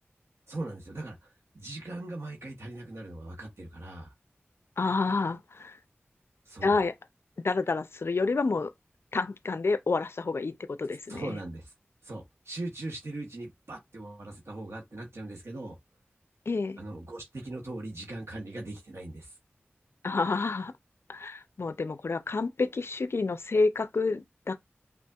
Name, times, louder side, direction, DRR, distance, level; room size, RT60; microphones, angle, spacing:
voice 1, 0.5-4.1 6.5-6.8 11.1-11.7 12.0-15.8 16.8-19.3, right 2 dB, 75° right, 1.0 m, -40 dB
voice 2, 4.8-5.8 6.6-6.9 7.4-8.7 9.1-11.4 16.5-16.8 20.0-20.7 21.1-24.6, left 3 dB, 65° left, 0.4 m, -29 dB
5.4 x 2.4 x 2.3 m
wide cardioid pair, 40°, 5 cm